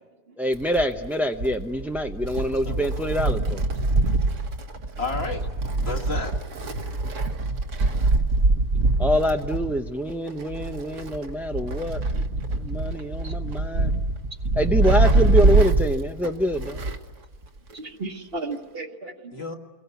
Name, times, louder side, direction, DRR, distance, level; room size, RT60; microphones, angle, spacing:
voice 1, 0.4-3.6 9.0-12.0 12.6-13.9 14.6-16.8, equal, ahead, 4 dB, 0.5 m, -25 dB
Wind, 0.5-17.1 17.4-17.5 18.5-18.6, right 2 dB, 60° right, 1.6 m, -24 dB
voice 2, 2.5-3.0 5.0-5.5 5.8-6.4 19.3-19.6, left 3 dB, 45° left, 3 dB, 2.1 m, -32 dB
voice 3, 12.9-13.3 17.7-19.3, right 3 dB, 45° right, 5 dB, 1.5 m, -35 dB
29.5 x 22.0 x 8.2 m, 1.2 s
omnidirectional pair, 1.5 m